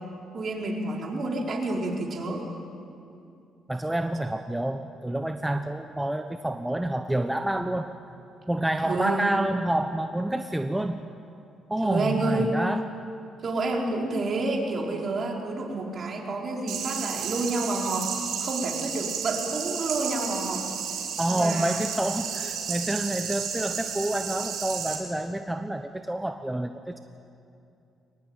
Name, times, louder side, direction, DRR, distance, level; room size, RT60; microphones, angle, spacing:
voice 1, 0.3-2.4 8.8-9.3 11.8-12.6 13.4-18.1 18.4-20.7 21.3-21.8, right 2 dB, 50° right, 0 dB, 4.4 m, -29 dB
voice 2, 3.7-7.9 8.5-11.0 11.7-12.8 21.2-27.0, right 1 dB, 10° right, 7 dB, 1.0 m, -28 dB
sound 1, 16.7-25.0, right 7 dB, 90° right, 4.1 m, -32 dB
23.0 x 20.5 x 9.0 m, 2.6 s
cardioid pair, 90°, 0 cm